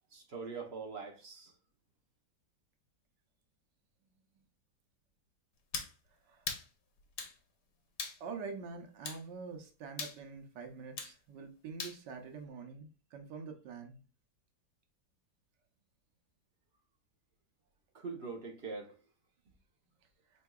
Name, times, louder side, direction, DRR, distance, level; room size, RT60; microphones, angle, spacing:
voice 1, 0.1-1.5 17.9-18.9, right 4 dB, 45° right, 1 dB, 1.0 m, -43 dB
sound 1, 5.7-5.9 6.5-6.7 7.2-7.4 8.0-8.2 9.0-9.2 10.0-10.2 11.0-11.1 11.8-12.0, left 5 dB, 70° left, 1.5 m, -39 dB
voice 2, 8.2-14.0, right 5 dB, 85° right, 4 dB, 1.5 m, -45 dB
4.5 x 3.9 x 2.2 m, 0.35 s
omnidirectional pair, 1.8 m